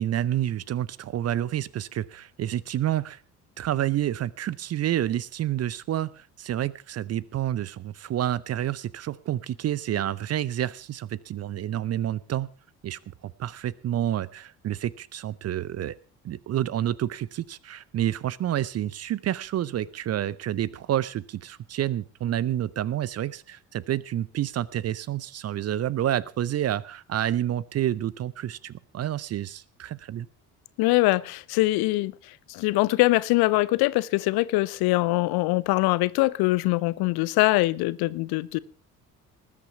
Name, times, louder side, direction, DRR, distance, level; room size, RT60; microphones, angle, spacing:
voice 1, 0.0-3.2 3.6-12.5 12.8-16.0 16.2-30.3, right 12 dB, 30° right, 0.6 m, -29 dB
voice 2, 30.8-38.6, left 20 dB, 50° left, 0.7 m, -23 dB
19.5 x 8.6 x 5.8 m
figure-of-eight pair, 50°, 48 cm